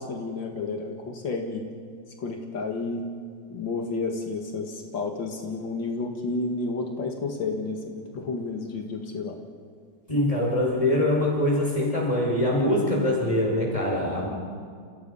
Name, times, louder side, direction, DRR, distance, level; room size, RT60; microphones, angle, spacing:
voice 1, 0.0-1.7 2.2-3.1 3.5-9.4, left 3 dB, 85° left, 2 dB, 2.6 m, -31 dB
voice 2, 10.1-14.3, left 1 dB, 20° left, -2 dB, 5.8 m, -23 dB
29.0 x 29.0 x 5.6 m, 2.1 s
omnidirectional pair, 2.0 m